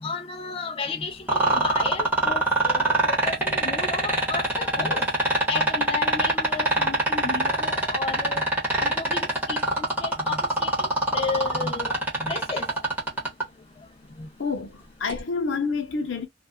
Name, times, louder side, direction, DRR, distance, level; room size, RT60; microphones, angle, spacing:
voice 1, 0.0-5.1 5.5-8.4 8.8-12.7 14.2-14.3, left 4 dB, 30° left, 0.3 m, -33 dB
sound 1, 1.3-13.4 15.1-15.2, right 1 dB, 10° right, 1.0 m, -22 dB
voice 2, 14.4-16.3, left 4 dB, 75° left, 0.7 m, -28 dB
2.4 x 2.2 x 2.4 m
head